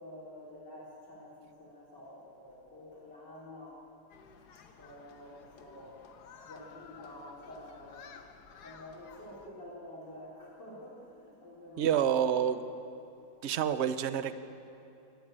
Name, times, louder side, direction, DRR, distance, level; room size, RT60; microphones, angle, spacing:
voice 1, 0.0-3.8 4.8-6.0 6.4-8.1 8.6-12.5, left 1 dB, 90° left, -5 dB, 4.4 m, -49 dB
Human group actions, 4.1-9.5, left 6 dB, 70° left, 1.6 m, -54 dB
voice 2, 11.8-12.6 13.4-14.3, right 9 dB, 50° right, 11 dB, 0.9 m, -28 dB
21.0 x 14.5 x 8.9 m, 2.8 s
omnidirectional pair, 1.8 m